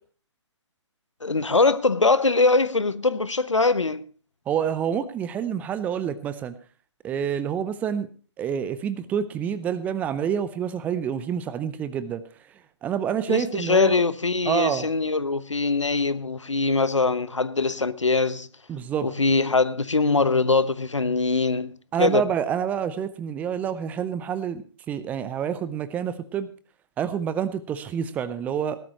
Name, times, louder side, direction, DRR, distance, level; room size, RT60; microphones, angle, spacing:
voice 1, 1.2-4.0 13.3-18.5 19.0-21.7 22.0-22.2, left 3 dB, 80° left, 1.0 m, -22 dB
voice 2, 4.5-6.5 7.0-8.1 8.4-12.2 12.8-14.0 14.5-14.9 18.7-19.1 21.9-26.5 27.0-28.8, right 8 dB, 10° right, 0.5 m, -27 dB
18.5 x 12.5 x 3.0 m
figure-of-eight pair, 135°, 15 cm